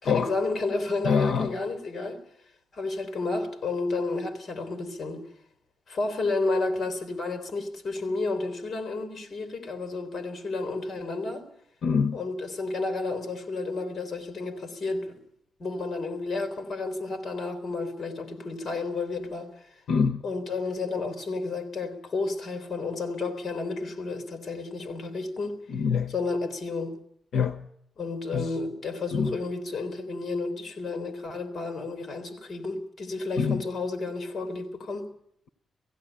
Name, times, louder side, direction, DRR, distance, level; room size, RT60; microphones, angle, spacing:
voice 1, 0.0-2.2 2.7-5.2 5.9-11.5 12.1-15.2 15.6-19.7 20.2-25.6 26.1-27.0 28.0-35.1, left 3 dB, 45° left, 3.3 m, -31 dB
voice 2, 1.1-1.5 11.8-12.2 19.9-20.2 25.7-26.1 27.3-27.6 28.3-28.5 29.1-29.3 33.4-33.6, left 6 dB, 75° left, 0.9 m, -25 dB
18.0 x 15.5 x 10.0 m
wide cardioid pair, 150°, 0 cm